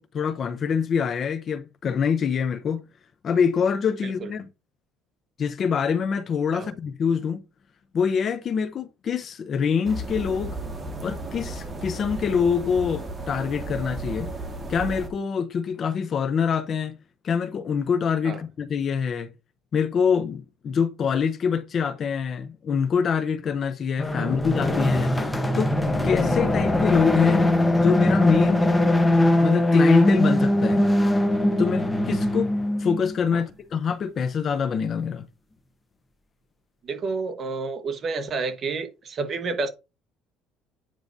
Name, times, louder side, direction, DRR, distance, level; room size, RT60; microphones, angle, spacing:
voice 1, 0.0-2.8 3.2-4.5 5.4-7.4 7.9-10.6 11.0-14.3 14.7-17.0 17.2-19.3 19.7-25.1 25.6-25.7 26.0-27.5 27.8-28.7 29.4-30.9 31.6-32.5 32.8-35.3, left 6 dB, 40° left, 0.6 m, -25 dB
sound 1, 9.8-15.1, right 2 dB, 15° right, 1.6 m, -34 dB
sound 2, 24.0-33.2, left 1 dB, 10° left, 0.9 m, -21 dB
voice 2, 36.8-39.7, right 4 dB, 35° right, 1.2 m, -30 dB
9.1 x 4.6 x 2.6 m
cardioid pair, 135°, 0 cm